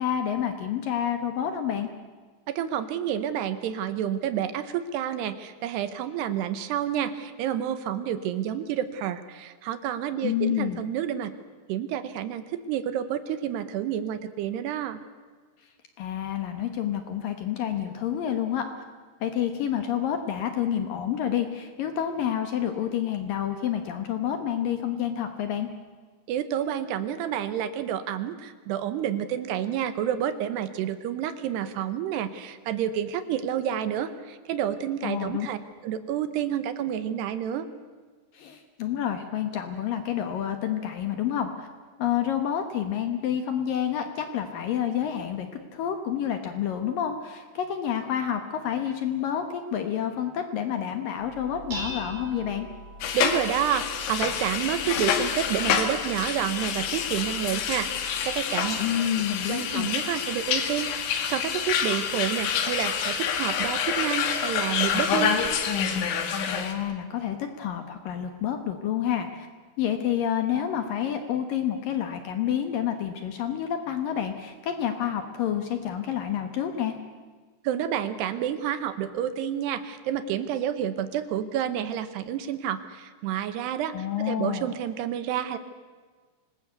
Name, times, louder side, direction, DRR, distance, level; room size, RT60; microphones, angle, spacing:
voice 1, 0.0-1.9 10.2-10.8 16.0-18.7 19.2-25.7 35.0-35.5 38.3-41.7 42.0-45.5 45.7-52.7 58.8-59.9 66.5-69.5 69.8-77.0 83.9-84.8, left 9 dB, 65° left, 7 dB, 2.4 m, -29 dB
voice 2, 2.5-11.3 11.7-15.0 26.3-35.6 35.8-37.7 53.1-58.8 59.5-65.4 77.6-85.6, right 10 dB, 75° right, 12 dB, 2.9 m, -29 dB
Dishes pots and pans, 51.2-58.3, equal, 50° right, 6.2 m, -42 dB
sound 1, 53.0-66.7, left 7 dB, 80° left, 4.2 m, -27 dB
26.0 x 19.5 x 8.1 m, 1.5 s
omnidirectional pair, 5.2 m